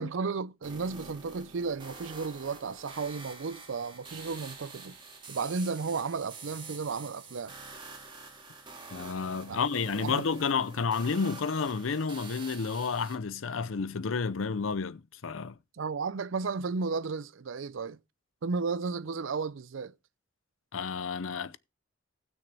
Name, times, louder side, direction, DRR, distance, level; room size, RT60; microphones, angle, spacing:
voice 1, 0.0-5.0 5.3-7.5 9.5-9.6 9.9-10.2 15.8-18.0 18.4-19.9, right 4 dB, 75° right, 0.5 m, -33 dB
sound 1, 0.6-13.2, right 3 dB, 25° right, 2.1 m, -47 dB
voice 2, 8.9-15.5 20.7-21.6, left 5 dB, 90° left, 0.6 m, -31 dB
18.5 x 6.3 x 3.4 m
head